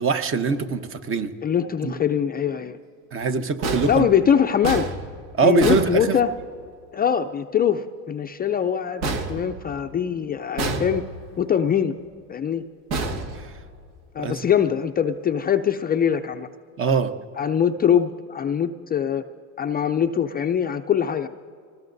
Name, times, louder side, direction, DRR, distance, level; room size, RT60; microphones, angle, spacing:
voice 1, 0.0-1.3 1.8-1.9 3.1-4.1 5.3-6.2 13.3-13.5 14.2-14.4 16.8-17.1, right 5 dB, 30° right, 8 dB, 1.0 m, -23 dB
voice 2, 1.4-2.8 3.9-4.9 5.4-6.3 6.9-11.0 11.4-11.9 12.3-12.6 14.1-16.5 17.4-19.2 19.6-21.3, left 8 dB, 25° left, 6 dB, 0.5 m, -22 dB
sound 1, 3.6-6.7 9.0-10.1 10.6-11.4 12.9-14.0, right 3 dB, 75° right, 1.8 m, -30 dB
26.0 x 19.5 x 2.7 m, 2.2 s
supercardioid pair, 105°, 39 cm